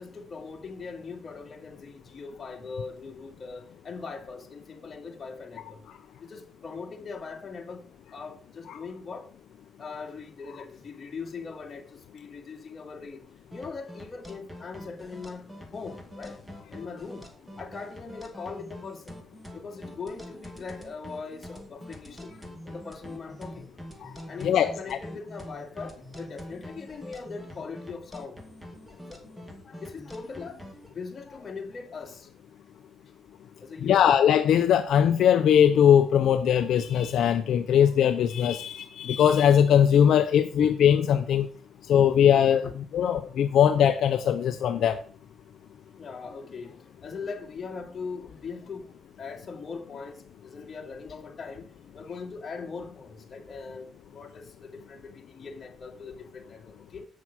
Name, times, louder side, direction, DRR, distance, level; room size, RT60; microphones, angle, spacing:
voice 1, 0.0-5.8 6.2-9.3 9.8-13.2 13.5-16.4 16.7-17.3 17.6-19.2 19.5-23.7 24.3-28.4 29.1-29.2 29.6-30.6 30.9-32.3 33.6-34.1 46.0-57.1, left 4 dB, 40° left, 2.1 m, -40 dB
sound 1, 13.5-30.9, equal, 5° right, 2.4 m, -44 dB
voice 2, 24.4-25.0 33.8-41.5 41.9-45.0, left 9 dB, 70° left, 0.6 m, -21 dB
8.4 x 6.2 x 6.0 m
cardioid pair, 90°, 0 cm